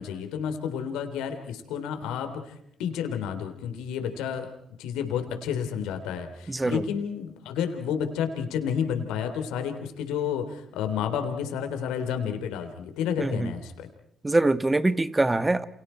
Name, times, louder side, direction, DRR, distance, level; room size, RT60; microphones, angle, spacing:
voice 1, 0.0-4.5 4.8-13.7, left 8 dB, 80° left, 7 dB, 3.4 m, -30 dB
voice 2, 6.5-6.8 13.2-13.5 14.2-15.7, right 2 dB, 20° right, 11 dB, 1.7 m, -24 dB
30.0 x 28.5 x 4.5 m, 0.71 s
supercardioid pair, 55°, 0 cm